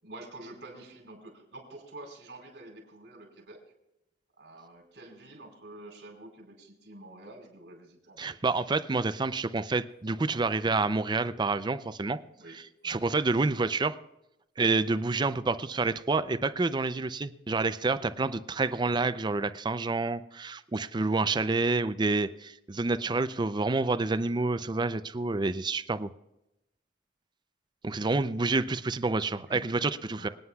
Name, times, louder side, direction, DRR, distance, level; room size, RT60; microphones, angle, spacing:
voice 1, 0.0-3.6 4.4-8.5 12.4-13.0 27.9-28.3 29.5-29.7 30.2-30.3, right 2 dB, 75° right, 0 dB, 4.8 m, -48 dB
voice 2, 8.2-12.2 12.8-14.0 14.6-26.1 27.8-30.3, right 3 dB, 25° right, 12 dB, 0.5 m, -28 dB
26.0 x 9.5 x 2.3 m, 0.89 s
head